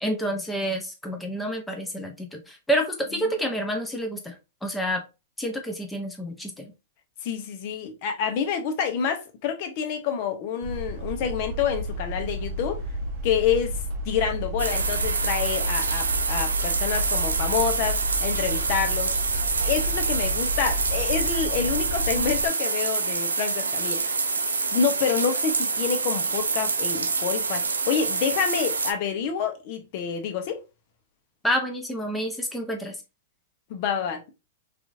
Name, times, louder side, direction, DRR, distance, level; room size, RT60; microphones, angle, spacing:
voice 1, 0.0-4.3 4.6-5.0 5.4-6.7 31.4-33.0, equal, 5° left, 0.6 m, -28 dB
voice 2, 7.2-12.8 13.2-19.2 19.6-24.2 24.7-30.6 33.7-34.3, left 7 dB, 50° left, 0.7 m, -28 dB
sound 1, 10.6-22.5, equal, 45° right, 0.6 m, -31 dB
sound 2, 14.6-28.9, right 4 dB, 90° right, 0.4 m, -26 dB
3.0 x 2.5 x 2.5 m
hypercardioid pair, 110°, 0 cm